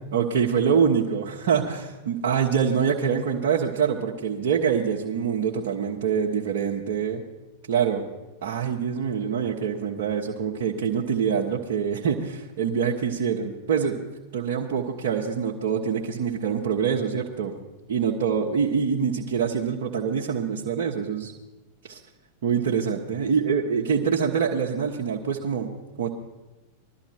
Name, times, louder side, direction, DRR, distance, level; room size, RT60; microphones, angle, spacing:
voice 1, 0.1-7.2 7.7-8.0 8.4-14.0 14.3-17.6 17.9-21.3 21.9-22.0 22.4-25.7 26.0-26.1, right 7 dB, 55° right, -2 dB, 1.4 m, -25 dB
20.5 x 13.0 x 4.4 m, 1.1 s
figure-of-eight pair, 90°, 0 cm